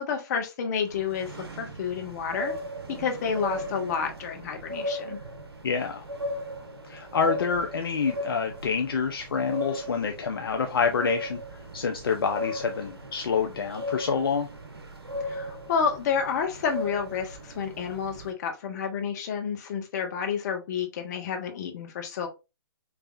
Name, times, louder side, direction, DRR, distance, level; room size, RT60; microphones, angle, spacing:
voice 1, 0.0-2.5 3.0-5.2 15.3-22.3, left 6 dB, 45° left, 4 dB, 1.4 m, -30 dB
sound 1, 0.9-18.3, left 1 dB, 85° right, 1.1 m, -37 dB
voice 2, 5.6-6.0 6.9-11.4 11.7-14.5, left 5 dB, 65° left, 4 dB, 0.7 m, -27 dB
4.7 x 3.3 x 2.6 m, 0.27 s
figure-of-eight pair, 130°, 13 cm